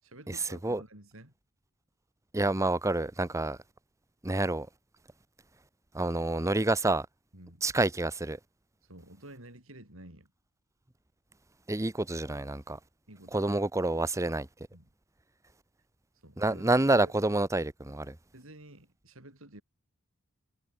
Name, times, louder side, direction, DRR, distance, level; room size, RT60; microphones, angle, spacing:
voice 1, 0.0-1.3 7.3-7.6 8.8-10.3 13.1-13.6 14.7-14.9 16.2-17.1 18.3-19.6, right 1 dB, 65° right, 6.2 m, -51 dB
voice 2, 2.3-3.6 4.2-4.7 5.9-7.1 7.6-8.4 11.7-12.8 13.3-14.5 16.4-18.1, right 2 dB, 15° right, 0.7 m, -28 dB
head